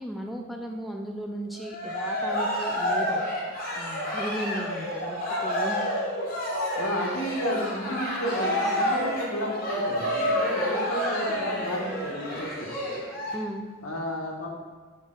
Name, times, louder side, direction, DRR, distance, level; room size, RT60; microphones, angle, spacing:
voice 1, 0.0-3.3 3.8-5.9 13.3-13.6, equal, ahead, 2 dB, 0.4 m, -36 dB
Cheering, 1.6-13.3, equal, 45° left, 1.6 m, -29 dB
voice 2, 6.7-12.7 13.8-14.5, equal, 75° left, -1 dB, 1.3 m, -32 dB
6.2 x 5.1 x 3.8 m, 1.5 s
head